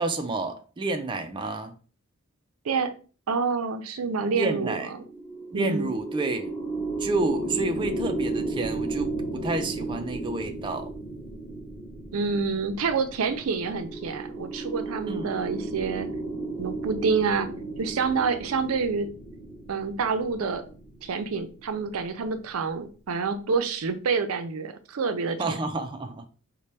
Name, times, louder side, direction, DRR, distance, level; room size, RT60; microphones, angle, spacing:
voice 1, 0.0-1.7 4.3-4.9 5.5-6.5 7.0-10.9 15.1-15.3 25.4-26.2, right 2 dB, 20° right, 0.3 m, -29 dB
voice 2, 3.3-5.0 5.5-5.9 12.1-16.1 16.6-17.5 17.8-19.1 19.7-20.6 21.0-25.6, right 5 dB, 90° right, 0.5 m, -27 dB
sound 1, 5.0-22.4, right 2 dB, 5° left, 0.8 m, -34 dB
4.1 x 2.2 x 3.3 m
head